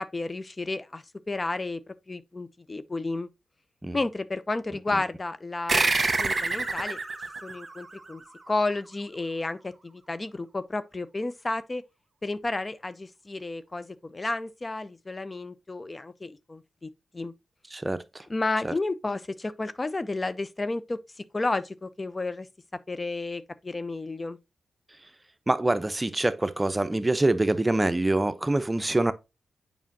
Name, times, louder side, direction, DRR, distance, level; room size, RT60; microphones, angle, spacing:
voice 1, 0.0-3.3 3.9-5.9 6.2-7.0 7.4-8.2 8.5-11.8 12.2-16.9 17.1-17.3 18.3-21.0 21.3-22.5 22.9-24.4, left 2 dB, 35° left, 0.6 m, -32 dB
sound 1, 5.7-8.7, right 3 dB, 45° right, 1.3 m, -28 dB
voice 2, 17.7-18.3 18.6-18.7 25.5-29.1, right 2 dB, 25° right, 0.8 m, -25 dB
7.3 x 5.5 x 2.8 m
supercardioid pair, 40°, 0 cm